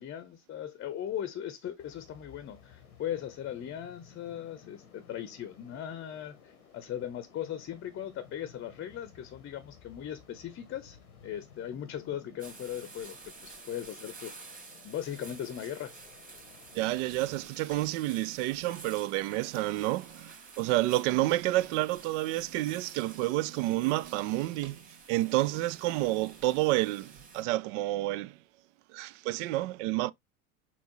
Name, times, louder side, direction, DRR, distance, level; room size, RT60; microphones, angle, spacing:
voice 1, 0.0-11.0 11.2-13.2 13.4-14.4 14.8-15.9 18.8-18.9 21.2-21.3, left 10 dB, 30° left, 0.7 m, -38 dB
sound 1, 1.8-17.4, left 7 dB, 85° left, 0.9 m, -56 dB
sound 2, 12.4-27.4, right 3 dB, 20° right, 1.9 m, -51 dB
voice 2, 16.7-28.4 28.9-30.1, right 17 dB, 55° right, 0.5 m, -29 dB
4.4 x 4.2 x 2.8 m
hypercardioid pair, 80°, 43 cm